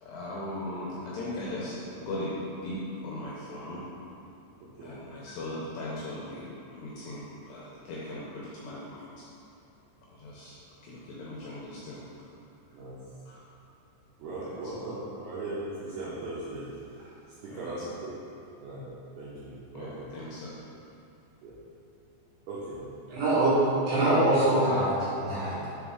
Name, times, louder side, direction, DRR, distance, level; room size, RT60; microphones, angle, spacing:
voice 1, 0.0-3.9 4.8-9.1 10.1-10.6 10.8-12.0 13.3-13.4 14.5-14.7 17.5-17.9 19.7-20.6, left 1 dB, 85° left, -7 dB, 2.5 m, -38 dB
voice 2, 4.6-5.0 12.7-13.0 14.2-16.7 17.4-18.2 18.6-18.9 19.2-20.1 21.4-21.6 22.5-22.8 25.4-25.7, right 2 dB, 85° right, -8 dB, 2.2 m, -38 dB
voice 3, 23.1-23.5 23.9-25.7, right 1 dB, 65° right, -10 dB, 3.5 m, -24 dB
7.2 x 3.9 x 3.6 m, 2.8 s
omnidirectional pair, 5.7 m